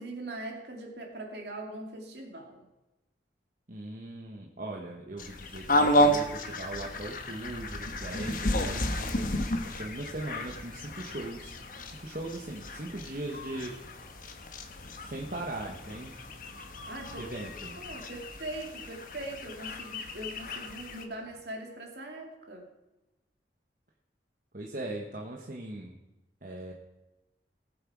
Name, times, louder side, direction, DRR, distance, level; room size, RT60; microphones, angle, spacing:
voice 1, 0.0-2.6 16.9-17.3 17.8-22.7, right 1 dB, 65° right, 1 dB, 2.5 m, -41 dB
voice 2, 3.7-11.5 11.8-13.8 14.9-16.2 17.1-17.8 24.5-25.9 26.4-26.7, right 2 dB, 50° right, 0 dB, 1.3 m, -39 dB
sound 1, 5.2-21.1, left 1 dB, 50° left, 1.2 m, -32 dB
18.5 x 7.8 x 4.8 m, 1.0 s
head